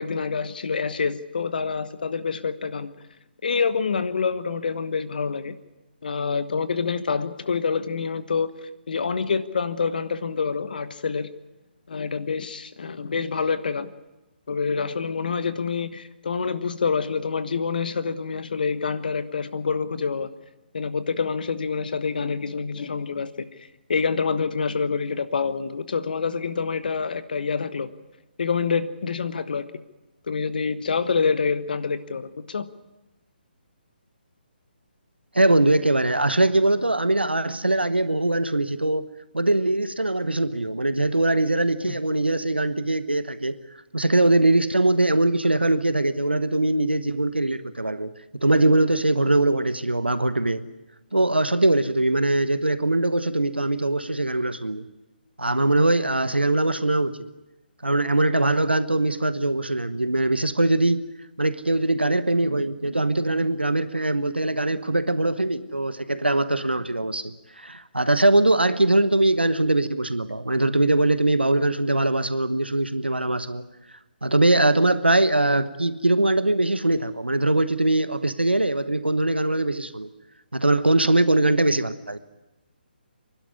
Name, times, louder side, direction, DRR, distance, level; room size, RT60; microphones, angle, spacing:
voice 1, 0.0-2.9 3.4-5.6 6.0-8.5 8.9-11.3 11.9-13.9 14.5-20.3 20.7-23.5 23.9-27.9 28.4-29.6 30.3-32.7, left 5 dB, 60° left, 14 dB, 1.2 m, -26 dB
voice 2, 35.3-43.6 43.9-48.1 48.4-50.6 51.1-54.8 55.4-57.2 57.8-61.0 61.4-73.6 74.2-80.1 80.5-82.2, right 2 dB, 90° right, 13 dB, 1.1 m, -22 dB
25.5 x 12.0 x 9.8 m, 1.0 s
figure-of-eight pair, 140°, 6 cm